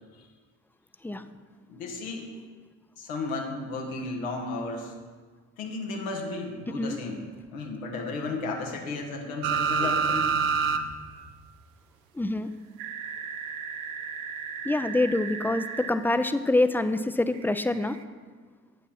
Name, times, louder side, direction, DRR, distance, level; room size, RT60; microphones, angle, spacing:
voice 1, 1.7-2.3 3.0-4.9 5.6-7.2 7.5-10.3, left 3 dB, 90° left, 1 dB, 1.1 m, -34 dB
sound 1, 9.4-10.8 11.1-11.2 12.8-15.9 17.6-17.7, right 6 dB, 85° right, 0.6 m, -29 dB
voice 2, 12.1-12.5 14.6-18.0, left 2 dB, 5° left, 11 dB, 0.3 m, -25 dB
8.2 x 8.1 x 4.2 m, 1.5 s
hypercardioid pair, 50°, 40 cm